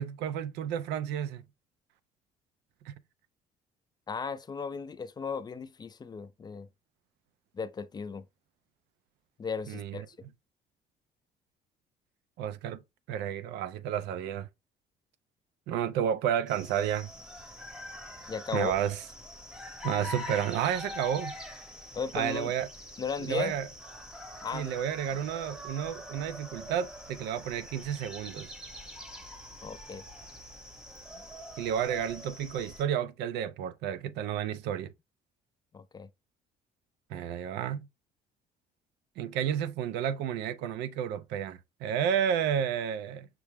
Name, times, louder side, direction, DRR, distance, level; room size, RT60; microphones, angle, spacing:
voice 1, 0.0-1.4 2.8-2.9 9.7-10.0 12.4-12.8 13.1-14.5 15.7-17.1 18.5-19.0 19.8-21.3 22.1-22.7 23.2-23.7 24.5-28.5 31.6-34.9 37.1-37.9 39.2-43.3, right 9 dB, 85° right, 0.5 m, -31 dB
voice 2, 4.1-6.7 7.5-8.2 9.4-10.1 18.3-18.7 21.9-22.5 23.0-23.6 24.4-24.7 29.6-30.0 35.7-36.1, left 5 dB, 25° left, 0.4 m, -36 dB
sound 1, 16.5-32.8, left 1 dB, 5° right, 0.8 m, -44 dB
5.9 x 2.1 x 3.3 m
cardioid pair, 110°, 17 cm